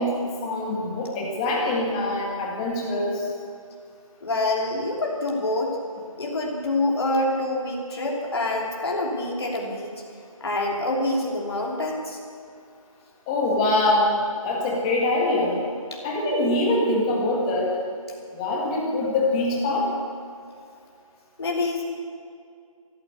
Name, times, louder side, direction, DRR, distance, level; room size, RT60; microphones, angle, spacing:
voice 1, 0.0-3.3 13.3-14.1 14.4-15.6 16.0-17.8 18.3-19.9, left 2 dB, 10° left, -2 dB, 1.6 m, -24 dB
voice 2, 4.2-5.8 6.2-9.9 10.4-12.2 15.9-16.0 21.4-21.8, left 2 dB, 45° left, -1 dB, 3.1 m, -26 dB
14.0 x 12.5 x 8.3 m, 2.3 s
figure-of-eight pair, 165°, 18 cm